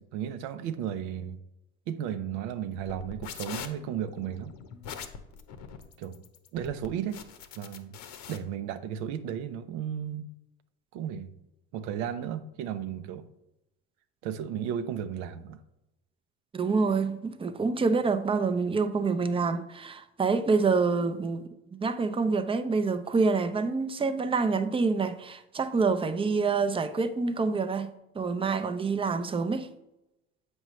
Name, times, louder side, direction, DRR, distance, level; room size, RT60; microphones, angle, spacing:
voice 1, 0.0-1.4 1.9-4.5 6.0-6.2 6.5-7.2 7.6-8.0 8.3-10.3 10.9-11.3 11.7-13.3 14.2-15.6, right 9 dB, 75° right, 0.7 m, -34 dB
sound 1, 2.8-8.4, left 7 dB, 65° left, 0.9 m, -42 dB
voice 2, 16.5-29.7, right 4 dB, 15° right, 0.6 m, -27 dB
7.9 x 5.3 x 3.1 m
hypercardioid pair, 75°, 31 cm